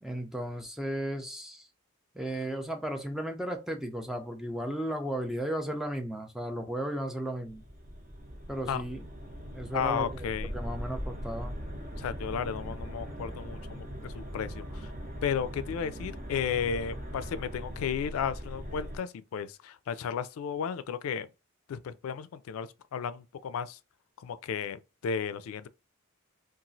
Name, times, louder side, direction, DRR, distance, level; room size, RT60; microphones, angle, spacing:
voice 1, 0.0-1.7 2.1-7.6 8.5-9.1 9.5-10.3 10.5-11.6, right 1 dB, ahead, 0.4 m, -35 dB
sound 1, 7.5-19.0, equal, 40° right, 0.8 m, -40 dB
voice 2, 9.7-10.5 12.0-14.9 15.2-21.3 21.7-23.8 24.2-25.7, left 7 dB, 85° left, 0.3 m, -34 dB
2.9 x 2.4 x 2.6 m
head